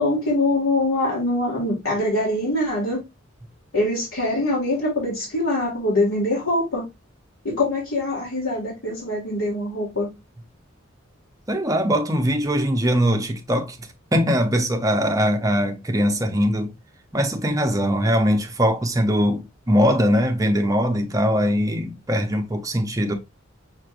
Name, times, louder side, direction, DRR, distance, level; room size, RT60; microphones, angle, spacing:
voice 1, 0.0-3.0 3.7-6.8 7.4-10.1, left 1 dB, 90° left, 1.9 m, -23 dB
voice 2, 11.5-13.8 14.1-16.7 17.1-23.1, equal, 15° right, 0.7 m, -21 dB
5.8 x 3.2 x 2.4 m
head